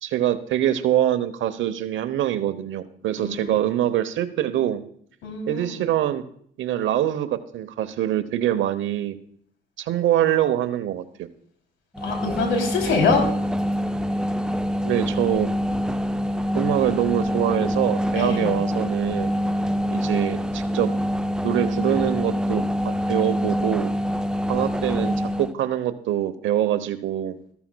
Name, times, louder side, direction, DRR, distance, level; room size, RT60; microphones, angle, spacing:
voice 1, 0.0-4.8 5.5-6.2 6.6-9.2 9.8-11.0 14.8-15.5 16.5-19.3 19.9-20.9 21.4-23.9 24.5-27.4, right 12 dB, 75° right, 12 dB, 0.9 m, -24 dB
voice 2, 3.2-3.7 5.2-5.8 12.0-13.2 18.1-18.6, left 4 dB, 80° left, 3 dB, 3.0 m, -24 dB
sound 1, 12.0-25.5, equal, 5° right, 0.5 m, -25 dB
14.0 x 13.0 x 2.2 m, 0.63 s
cardioid pair, 90°, 20 cm